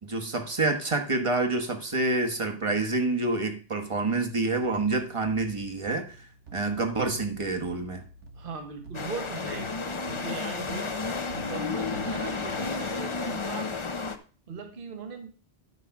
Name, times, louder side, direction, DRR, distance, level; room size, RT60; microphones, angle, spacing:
voice 1, 0.0-8.0, right 2 dB, 25° right, 5 dB, 1.3 m, -28 dB
sound 1, 4.4-12.9, right 1 dB, 80° right, 1.6 m, -48 dB
voice 2, 8.3-9.7 10.1-10.9 11.3-13.7 14.5-15.3, right 5 dB, 50° right, 5 dB, 1.3 m, -39 dB
sound 2, 8.9-14.2, left 4 dB, 30° left, 0.7 m, -32 dB
11.0 x 4.8 x 5.9 m, 0.39 s
omnidirectional pair, 1.2 m